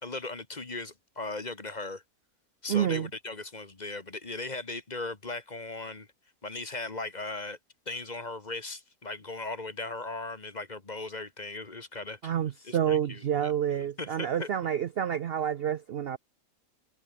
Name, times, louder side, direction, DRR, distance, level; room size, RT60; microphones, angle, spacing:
voice 1, 0.0-2.0 2.6-6.1 6.4-7.6 7.9-12.3 12.6-13.5 13.8-14.5, left 3 dB, 30° left, 1.8 m, -38 dB
voice 2, 2.7-3.1 12.2-16.2, right 9 dB, 60° right, 0.7 m, -28 dB
omnidirectional pair, 1.5 m